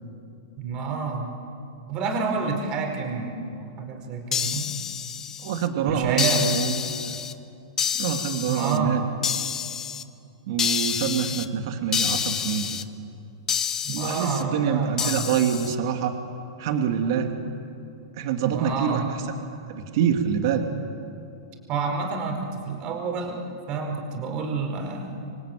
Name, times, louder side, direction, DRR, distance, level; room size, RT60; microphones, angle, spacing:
voice 1, 0.6-1.3 1.9-4.7 5.8-6.7 8.5-9.0 13.8-15.3 18.4-19.1 21.7-23.4 23.7-25.2, right 4 dB, 35° right, 3 dB, 5.0 m, -28 dB
sound 1, 4.3-5.7 6.2-7.3 7.8-8.8 9.2-10.0 10.6-11.5 11.9-12.8 13.5-14.4 15.0-15.7, left 8 dB, 20° left, 1.0 m, -28 dB
voice 2, 5.4-7.1 8.0-9.0 10.5-12.8 13.9-16.2 16.6-17.3 18.2-19.2 19.7-20.7, right 8 dB, 55° right, 4 dB, 2.6 m, -26 dB
27.0 x 23.0 x 9.2 m, 2.5 s
hypercardioid pair, 150°, 3 cm